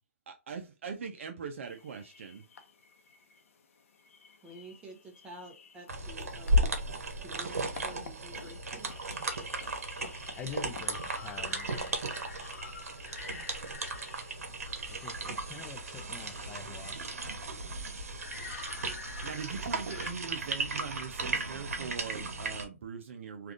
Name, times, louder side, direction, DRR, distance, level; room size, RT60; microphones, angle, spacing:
voice 1, 0.3-2.4 19.2-23.5, right 6 dB, 60° right, 0.6 m, -41 dB
sound 1, 1.6-20.1, left 6 dB, 65° left, 0.7 m, -50 dB
voice 2, 4.4-6.7 7.2-8.9, right 1 dB, 15° right, 0.8 m, -50 dB
sound 2, 5.9-22.7, right 1 dB, 75° right, 0.9 m, -35 dB
voice 3, 10.3-12.0 14.9-16.9, left 6 dB, 15° left, 0.4 m, -46 dB
3.4 x 2.4 x 2.5 m
hypercardioid pair, 145°, 8 cm